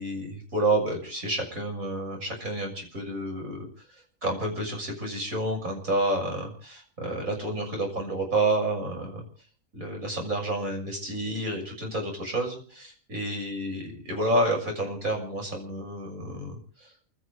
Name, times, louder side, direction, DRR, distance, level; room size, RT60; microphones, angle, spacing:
voice 1, 0.0-3.7 4.2-9.2 9.7-17.1, right 1 dB, 80° right, 1 dB, 7.1 m, -29 dB
29.5 x 13.5 x 3.4 m, 0.42 s
omnidirectional pair, 1.4 m